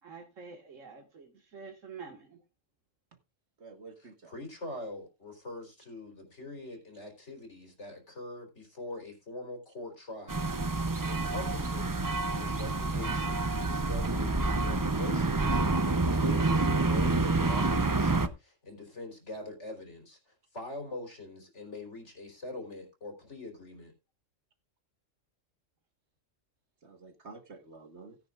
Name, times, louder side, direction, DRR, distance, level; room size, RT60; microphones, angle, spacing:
voice 1, 0.0-2.4, right 5 dB, 75° right, 2.1 m, -47 dB
voice 2, 3.6-4.3 26.8-28.2, right 4 dB, 55° right, 1.9 m, -50 dB
voice 3, 4.3-15.8 16.1-23.9, left 2 dB, 60° left, 4.0 m, -43 dB
sound 1, 10.3-18.3, right 3 dB, 25° right, 0.5 m, -28 dB
17.5 x 9.7 x 2.4 m
omnidirectional pair, 1.3 m